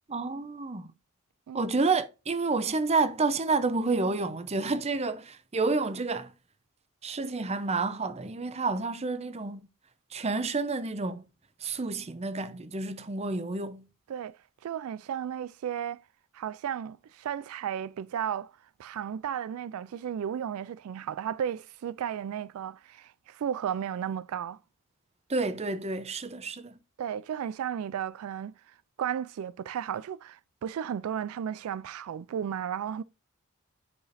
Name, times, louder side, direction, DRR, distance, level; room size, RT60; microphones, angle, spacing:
voice 1, 0.1-0.9 1.5-6.3 7.0-9.6 10.1-11.2 11.6-13.8 25.3-26.8, right 3 dB, 30° right, 0.7 m, -29 dB
voice 2, 14.6-16.0 16.3-18.5 18.8-24.6 27.0-33.0, right 9 dB, 80° right, 0.3 m, -34 dB
9.7 x 4.9 x 2.6 m
head